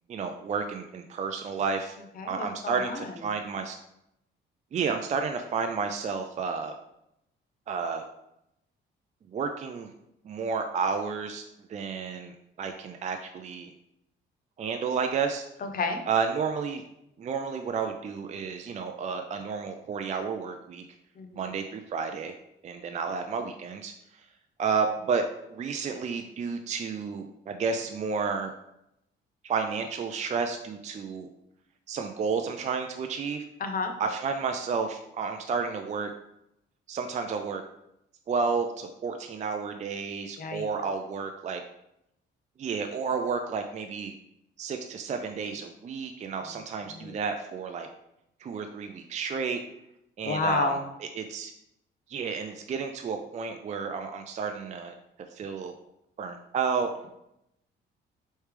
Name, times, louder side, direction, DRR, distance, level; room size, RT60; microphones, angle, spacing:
voice 1, 0.1-2.0 2.3-3.8 4.7-6.7 7.7-8.0 9.3-9.9 10.2-11.4 11.7-13.7 14.6-15.4 16.1-16.8 17.2-20.9 21.4-22.3 22.6-24.3 24.6-25.2 25.5-28.5 29.4-31.3 31.9-33.5 34.0-36.1 36.9-37.6 38.3-41.6 42.6-44.1 44.6-47.9 48.4-49.6 50.2-50.8 51.2-51.5 52.1-54.9 55.3-55.7 56.2-56.9, right 5 dB, 35° right, 5 dB, 0.4 m, -31 dB
voice 2, 2.2-3.1 15.6-16.0 21.2-21.5 33.6-33.9 40.4-40.6 46.9-47.1 50.2-50.8, left 3 dB, 45° left, 6 dB, 0.7 m, -30 dB
4.6 x 3.2 x 3.3 m, 0.82 s
cardioid pair, 90°, 20 cm